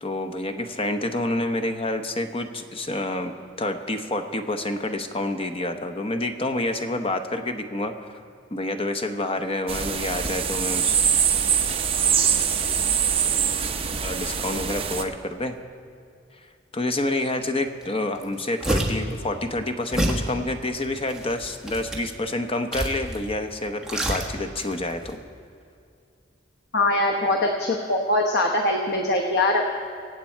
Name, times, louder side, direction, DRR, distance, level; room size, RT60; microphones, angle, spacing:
voice 1, 0.0-3.3 3.6-7.9 8.5-11.0 14.0-15.5 16.7-25.2, left 2 dB, 30° left, 6 dB, 0.8 m, -28 dB
sound 1, 9.7-15.0, right 7 dB, 30° right, 0.7 m, -23 dB
sound 2, 17.8-17.9 18.2-19.1 19.9-20.3 21.0-22.1 22.7-23.3 23.6-24.7 25.0-25.1, right 1 dB, 5° right, 1.4 m, -27 dB
voice 2, 26.7-29.6, left 2 dB, 55° left, 1 dB, 1.0 m, -22 dB
24.0 x 8.3 x 4.5 m, 2.3 s
head